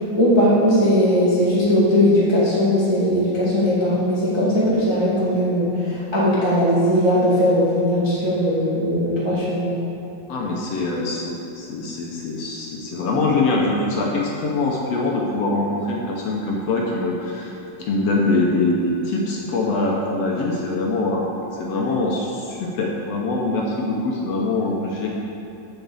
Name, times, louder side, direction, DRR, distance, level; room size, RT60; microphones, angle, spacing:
voice 1, 0.2-9.7, equal, 15° right, -9 dB, 0.9 m, -19 dB
voice 2, 10.3-17.5 17.9-21.3 21.5-25.1, left 2 dB, 70° left, -2 dB, 1.6 m, -23 dB
7.8 x 5.7 x 7.1 m, 2.9 s
omnidirectional pair, 3.8 m